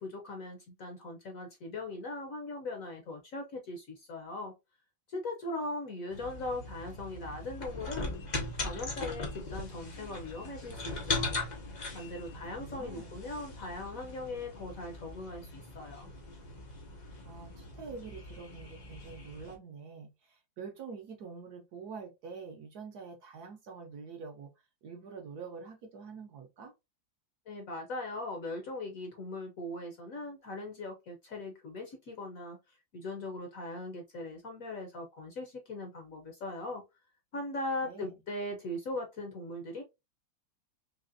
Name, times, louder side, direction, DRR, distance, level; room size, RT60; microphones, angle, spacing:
voice 1, 0.0-4.5 5.1-8.1 8.6-11.4 11.9-16.1 27.5-36.8 37.3-39.8, left 2 dB, 60° left, 1.0 m, -40 dB
sound 1, 6.1-19.6, left 2 dB, 75° left, 0.4 m, -40 dB
voice 2, 12.3-13.2 17.2-24.5 24.8-26.7 37.8-38.2, right 5 dB, 65° right, 1.1 m, -46 dB
4.1 x 2.9 x 2.6 m
omnidirectional pair, 2.1 m